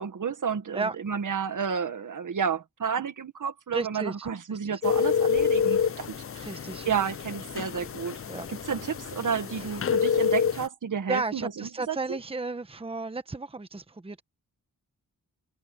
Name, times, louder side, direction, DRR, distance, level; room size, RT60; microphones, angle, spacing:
voice 1, 0.0-6.1 6.3-6.5 6.8-8.2 8.5-12.2, right 7 dB, 60° right, 1.6 m, -31 dB
voice 2, 3.7-4.1 4.5-4.8 6.3-6.9 8.3-8.5 9.6-9.7 11.1-14.2, right 3 dB, 15° right, 1.1 m, -33 dB
Cell Phone Dial, 4.8-10.7, left 7 dB, 40° left, 0.6 m, -27 dB
wide cardioid pair, 120°, 35 cm